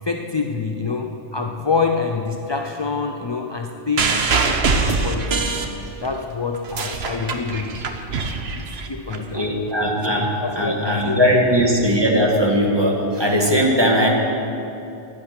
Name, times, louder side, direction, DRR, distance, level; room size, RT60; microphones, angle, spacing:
voice 1, 0.0-5.5 6.0-7.8 8.1-8.2 8.6-9.5 10.0-11.6, left 4 dB, 30° left, 4 dB, 0.5 m, -26 dB
sound 1, 4.0-6.2 6.5-9.2 10.0-10.1, right 4 dB, 65° right, 1.2 m, -23 dB
voice 2, 9.1-14.1, equal, 20° right, -1 dB, 1.9 m, -19 dB
15.0 x 11.0 x 6.1 m, 2.9 s
omnidirectional pair, 1.2 m